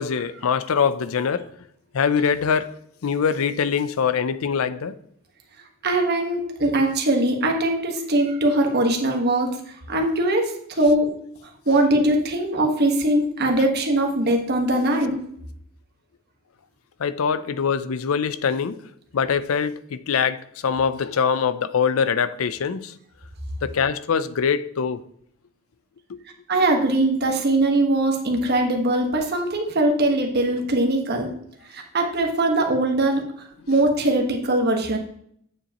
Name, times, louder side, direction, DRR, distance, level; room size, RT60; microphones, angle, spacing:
voice 1, 0.0-1.5 1.9-2.7 3.0-4.9 13.6-13.7 17.0-18.8 19.1-22.9 23.6-25.0 26.1-26.2, left 6 dB, 75° left, 0.5 m, -23 dB
voice 2, 5.8-9.6 9.9-11.1 11.7-15.2 26.5-31.3 31.7-33.2 33.7-35.0, right 1 dB, 50° right, 1.3 m, -21 dB
8.2 x 7.4 x 2.9 m
head